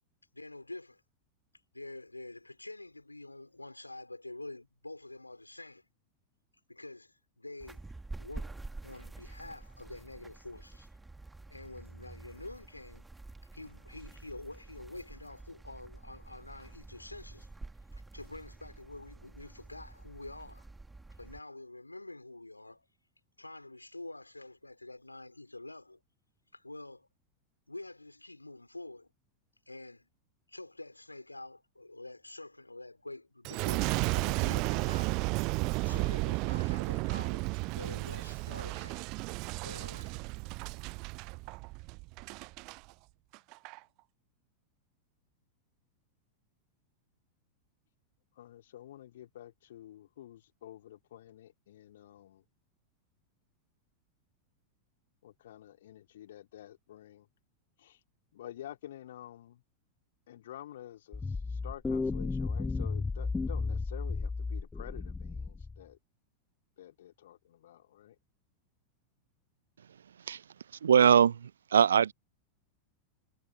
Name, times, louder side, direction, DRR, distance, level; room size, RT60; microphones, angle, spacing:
voice 1, 0.3-1.0 1.7-5.9 6.7-7.9 8.2-8.6 8.8-10.9 11.5-13.1 13.5-17.5 17.9-20.6 21.2-22.9 23.4-26.0 26.5-27.1 27.7-29.1 29.7-30.1 30.5-35.2 35.8-37.5 37.8-39.1 39.6-40.2, left 2 dB, 85° left, 4.7 m, -47 dB
sound 1, 7.6-21.4, right 2 dB, 10° right, 2.6 m, -48 dB
Boom, 33.4-42.8 43.3-43.8, right 27 dB, 40° right, 0.4 m, -33 dB
voice 2, 48.4-52.4 55.2-57.3 57.8-58.0 58.3-59.6 60.3-66.0 66.8-68.2, left 12 dB, 60° left, 2.4 m, -49 dB
sound 2, 61.1-65.8, left 4 dB, 10° left, 1.7 m, -33 dB
voice 3, 70.8-72.1, right 8 dB, 65° right, 0.8 m, -22 dB
figure-of-eight pair, 90°, 0 cm